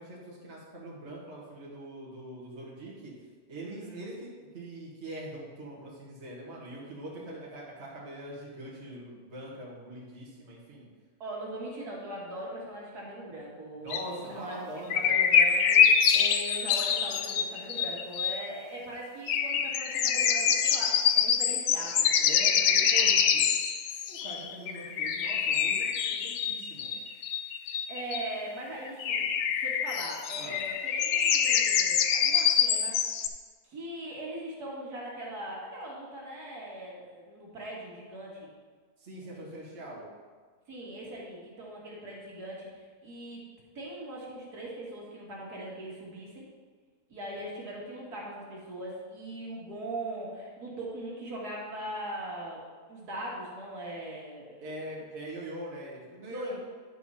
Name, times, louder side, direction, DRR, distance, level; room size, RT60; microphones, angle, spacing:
voice 1, 0.0-3.1 3.5-10.9 13.8-15.2 22.2-23.5 23.9-27.0 30.4-30.6 39.0-40.1 54.6-56.6, right 1 dB, 40° right, -5 dB, 1.9 m, -43 dB
voice 2, 3.6-4.1 11.2-22.1 27.9-29.2 29.5-32.9 33.7-38.5 39.2-39.4 40.7-43.4 43.7-46.4 47.1-54.6 56.3-56.6, right 1 dB, 70° right, -4 dB, 2.4 m, -40 dB
sound 1, 13.9-14.1 14.9-18.4 19.3-28.3 28.9-33.3, left 8 dB, 65° left, 0.9 m, -25 dB
10.0 x 4.7 x 5.5 m, 1.5 s
omnidirectional pair, 1.8 m